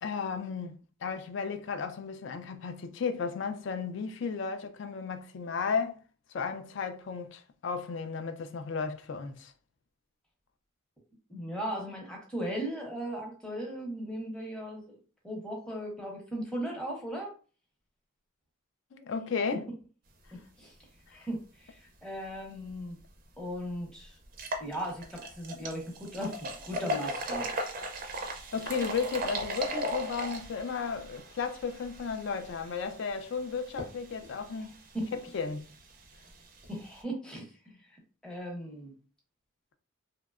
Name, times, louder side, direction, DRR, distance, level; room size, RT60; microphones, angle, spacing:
voice 1, 0.0-0.7 1.0-6.0 6.3-9.5 18.9-19.7 21.1-21.3 28.5-34.8 35.1-35.7, left 5 dB, 60° left, 0.3 m, -34 dB
voice 2, 11.3-15.0 15.2-17.3 20.3-20.7 21.1-23.0 23.4-24.2 24.6-27.5 34.9-35.1 36.7-37.8 38.2-38.9, equal, 5° left, 0.7 m, -37 dB
sound 1, 23.0-23.1 23.5-23.6 24.2-37.0, equal, 40° right, 0.4 m, -38 dB
2.7 x 2.1 x 2.3 m
head